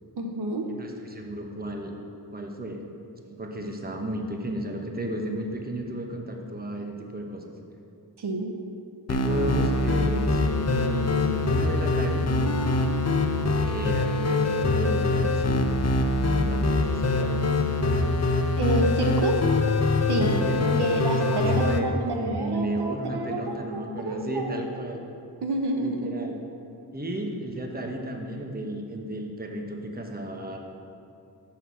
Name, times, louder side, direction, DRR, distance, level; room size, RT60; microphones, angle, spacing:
voice 1, 0.2-0.7 8.2-8.5 18.6-19.5 20.1-20.5 20.8-24.5 25.4-26.1, right 2 dB, 65° right, 2 dB, 0.8 m, -28 dB
voice 2, 0.7-1.9 2.3-2.8 3.4-7.5 9.1-12.3 13.7-15.8 16.2-17.7 20.2-25.0 25.8-26.4 26.9-30.6, right 1 dB, 20° right, 2 dB, 1.0 m, -33 dB
sound 1, 9.1-21.8, left 2 dB, 35° left, 0.6 m, -24 dB
6.5 x 5.7 x 6.9 m, 2.5 s
cardioid pair, 60°, 43 cm